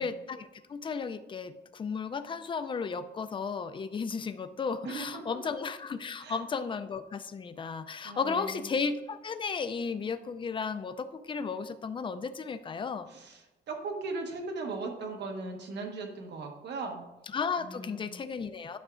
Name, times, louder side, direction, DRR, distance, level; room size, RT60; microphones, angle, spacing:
voice 1, 0.0-13.1 17.3-18.8, left 5 dB, 30° left, 11 dB, 0.4 m, -34 dB
voice 2, 4.8-5.4 6.2-6.4 8.0-8.7 13.1-13.4 13.7-17.0 17.6-18.2, right 3 dB, 75° right, 2 dB, 1.3 m, -38 dB
11.5 x 5.8 x 2.5 m, 1.0 s
cardioid pair, 145°, 18 cm